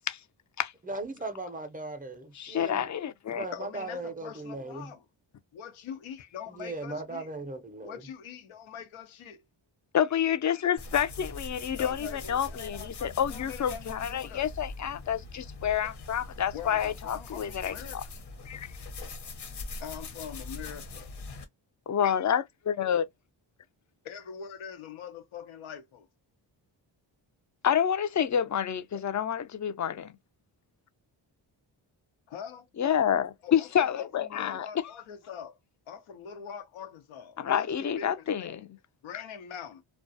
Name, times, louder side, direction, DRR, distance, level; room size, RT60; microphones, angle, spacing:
voice 1, 0.8-2.9 3.3-4.9 6.5-8.0, right 2 dB, 20° right, 0.5 m, -38 dB
voice 2, 2.4-3.4 9.9-18.0 18.5-18.7 21.9-23.1 27.6-30.2 32.8-34.7 37.4-38.6, left 9 dB, 40° left, 0.5 m, -28 dB
voice 3, 3.5-5.0 5.5-7.3 7.8-9.4 11.8-14.5 16.5-18.0 19.8-21.1 24.0-26.1 28.9-29.0 32.3-32.7 33.4-35.6 35.9-37.7 38.0-38.7 39.0-39.8, left 8 dB, 85° left, 0.7 m, -43 dB
sound 1, 10.8-21.4, left 3 dB, 55° left, 0.9 m, -42 dB
2.3 x 2.2 x 2.6 m
cardioid pair, 60°, 47 cm